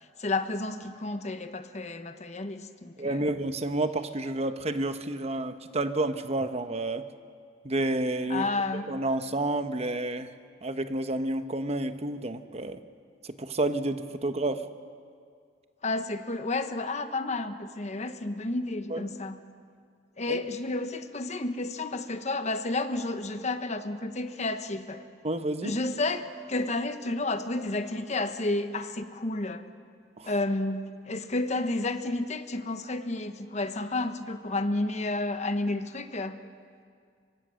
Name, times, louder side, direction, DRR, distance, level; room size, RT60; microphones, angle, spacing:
voice 1, 0.2-3.3 8.3-8.9 15.8-19.4 20.2-25.0 25.6-29.7 30.3-36.4, left 2 dB, 40° left, 9 dB, 1.2 m, -31 dB
voice 2, 3.0-7.0 7.6-10.3 10.6-12.8 13.4-14.7 18.9-19.0 20.3-20.4 25.2-25.7 30.2-30.3, right 2 dB, 35° right, 9 dB, 1.0 m, -30 dB
25.0 x 23.5 x 6.4 m, 2.2 s
head